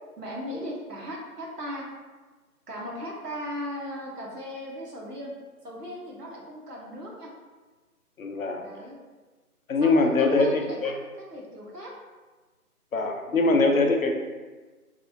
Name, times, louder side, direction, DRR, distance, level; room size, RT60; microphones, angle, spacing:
voice 1, 0.2-1.9 2.7-5.3 5.6-7.3 8.6-9.0 9.8-10.8 11.2-11.9 13.3-13.4, equal, 85° right, -2 dB, 1.0 m, -37 dB
voice 2, 8.2-8.6 9.7-10.9 12.9-14.2, left 3 dB, 65° left, 3 dB, 0.6 m, -22 dB
3.3 x 2.5 x 2.6 m, 1.3 s
figure-of-eight pair, 160°, 46 cm